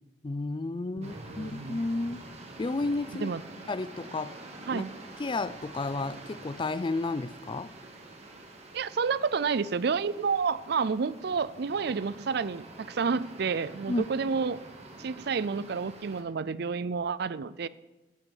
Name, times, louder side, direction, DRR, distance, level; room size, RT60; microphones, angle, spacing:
voice 1, 0.2-2.2 2.6-3.3 3.7-4.3 4.7-4.8 5.2-7.7 13.9-14.0, left 3 dB, 30° left, 0.4 m, -32 dB
sound 1, 1.0-16.2, right 2 dB, 35° right, 2.0 m, -47 dB
voice 2, 1.0-1.8 3.2-3.4 4.7-4.9 8.7-14.6 15.0-17.7, right 5 dB, 65° right, 0.5 m, -30 dB
12.0 x 5.9 x 9.3 m
head